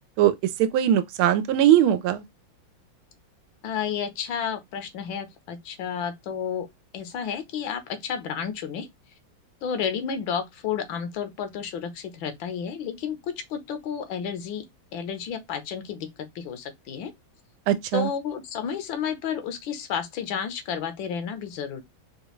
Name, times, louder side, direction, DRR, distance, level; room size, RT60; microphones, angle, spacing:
voice 1, 0.6-2.2 17.7-18.1, right 11 dB, 85° right, 1.4 m, -20 dB
voice 2, 3.6-6.7 6.9-8.9 9.6-14.6 14.9-16.1 16.3-17.1 17.9-21.8, left 7 dB, 75° left, 1.5 m, -31 dB
4.8 x 2.4 x 3.0 m
omnidirectional pair, 2.2 m